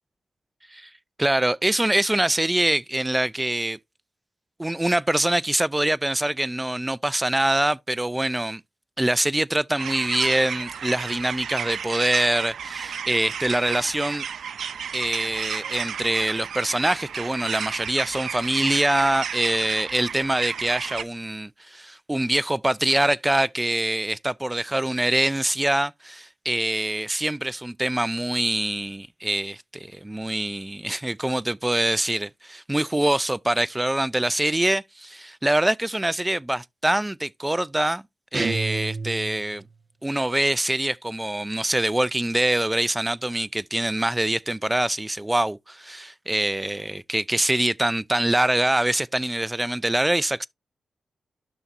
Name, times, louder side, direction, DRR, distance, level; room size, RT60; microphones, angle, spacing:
voice 1, 1.2-3.8 4.6-8.6 9.0-14.2 14.9-38.0 38.3-39.6 40.0-50.5, right 1 dB, 15° right, 0.4 m, -24 dB
sound 1, 9.8-21.0, right 7 dB, 80° right, 0.6 m, -33 dB
sound 2, 38.3-39.7, right 3 dB, 35° right, 1.1 m, -29 dB
12.0 x 4.1 x 2.5 m
cardioid pair, 50°, 0 cm